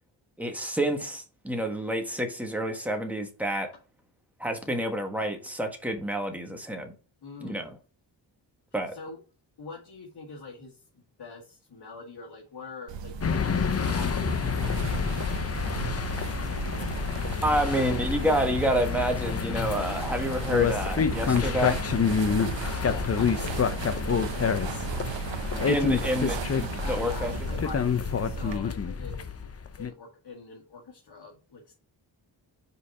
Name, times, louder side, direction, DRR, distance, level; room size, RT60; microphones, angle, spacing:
voice 1, 0.4-3.7 4.4-6.9 7.4-7.8 8.7-8.9 17.4-21.8 25.7-27.3, equal, 5° right, 1.4 m, -28 dB
voice 2, 7.2-7.7 8.9-9.2 9.6-17.4 22.8-25.9 26.8-29.5 29.8-31.7, left 4 dB, 60° left, 1.7 m, -45 dB
sound 1, 12.9-28.6, right 6 dB, 75° right, 0.9 m, -36 dB
sound 2, 13.2-29.9, left 6 dB, 35° left, 0.7 m, -28 dB
5.5 x 4.2 x 4.7 m
wide cardioid pair, 110°, 44 cm